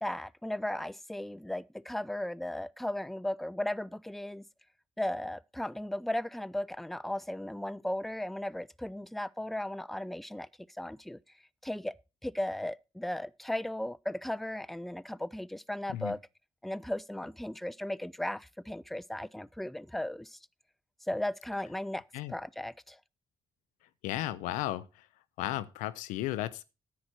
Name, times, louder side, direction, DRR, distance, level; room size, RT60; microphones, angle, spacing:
voice 1, 0.0-4.5 5.0-10.5 10.8-11.2 11.6-11.9 12.2-16.2 16.6-20.4 21.1-23.0, left 1 dB, ahead, 0.5 m, -36 dB
voice 2, 24.0-25.1 25.4-26.6, left 14 dB, 90° left, 0.5 m, -34 dB
10.5 x 8.4 x 4.3 m
hypercardioid pair, 45°, 13 cm